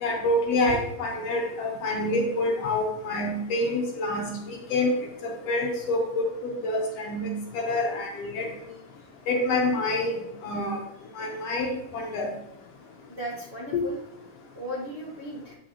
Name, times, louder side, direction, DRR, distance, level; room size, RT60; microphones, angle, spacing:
voice 1, 0.0-4.9 5.2-8.5 9.3-10.2 10.4-10.8 11.2-12.3 13.7-13.8, left 2 dB, 65° left, 1 dB, 1.8 m, -27 dB
voice 2, 11.1-11.7 13.1-14.0 14.5-15.5, equal, 50° right, -5 dB, 0.8 m, -37 dB
8.6 x 5.8 x 2.9 m, 0.80 s
omnidirectional pair, 3.4 m